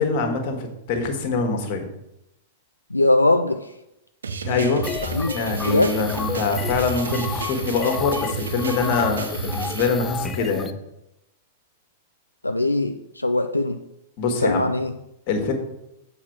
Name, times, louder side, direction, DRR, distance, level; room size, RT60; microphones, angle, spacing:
voice 1, 0.0-1.8 4.4-4.9 5.1-10.7 14.2-14.6 15.3-15.5, left 4 dB, 45° left, 4 dB, 1.6 m, -24 dB
voice 2, 2.9-3.7 5.0-5.3 5.6-6.0 12.4-13.8 14.4-14.9, left 2 dB, 90° left, 6 dB, 0.4 m, -21 dB
sound 1, 4.2-9.9, right 5 dB, 75° right, 0.6 m, -31 dB
sound 2, 4.8-10.7, left 5 dB, 15° left, 0.5 m, -32 dB
7.4 x 4.2 x 5.9 m, 0.86 s
figure-of-eight pair, 100°, 0 cm